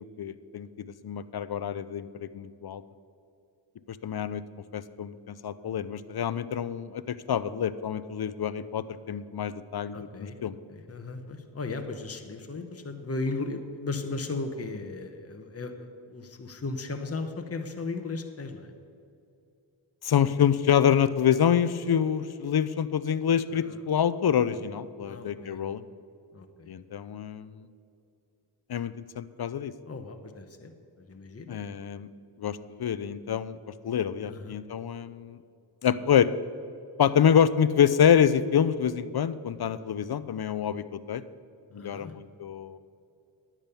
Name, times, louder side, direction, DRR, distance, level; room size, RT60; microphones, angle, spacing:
voice 1, 0.2-2.8 3.9-4.4 4.7-10.6 20.0-25.8 26.7-27.7 28.7-29.7 31.5-32.1 32.4-33.6 33.8-35.4 35.8-36.3 37.0-41.2 41.7-42.8, left 8 dB, 55° left, 15 dB, 0.6 m, -26 dB
voice 2, 9.9-10.4 10.7-18.7 23.5-23.8 25.1-25.6 26.3-26.7 29.9-30.7 31.0-31.6 34.3-34.6 41.7-42.1, left 3 dB, 30° left, 5 dB, 1.0 m, -36 dB
10.5 x 7.4 x 6.8 m, 2.5 s
cardioid pair, 45°, 47 cm